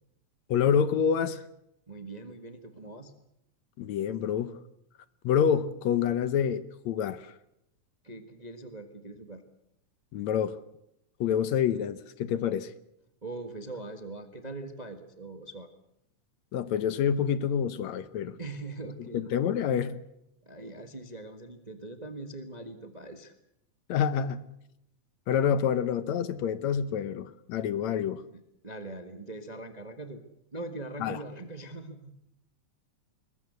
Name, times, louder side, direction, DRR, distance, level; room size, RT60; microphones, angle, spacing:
voice 1, 0.5-1.4 3.8-4.6 5.2-7.3 10.1-10.6 11.2-12.7 16.5-18.4 19.1-20.0 23.9-24.4 25.3-28.2 31.0-31.2, left 8 dB, 70° left, 15 dB, 2.2 m, -27 dB
voice 2, 1.9-3.1 8.0-9.4 13.2-15.7 18.4-19.3 20.4-23.3 28.6-30.2 30.5-32.2, right 2 dB, 20° right, 8 dB, 1.0 m, -41 dB
21.0 x 21.0 x 8.2 m, 0.79 s
omnidirectional pair, 3.4 m